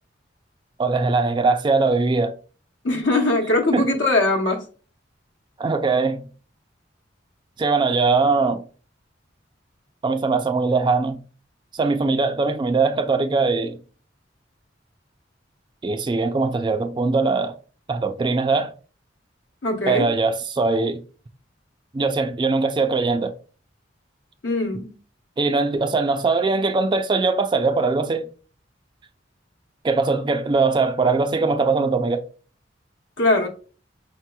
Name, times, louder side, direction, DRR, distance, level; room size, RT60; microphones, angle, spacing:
voice 1, 0.8-2.4 3.7-3.9 5.6-6.2 7.6-8.6 10.0-11.2 11.7-13.8 15.8-17.5 17.9-18.7 19.9-21.0 21.9-23.3 25.4-28.3 29.8-32.2, right 3 dB, 25° right, 0.3 m, -21 dB
voice 2, 2.8-4.6 19.6-20.1 24.4-24.9 33.2-33.5, left 2 dB, 80° left, 0.9 m, -21 dB
5.5 x 2.9 x 2.2 m
head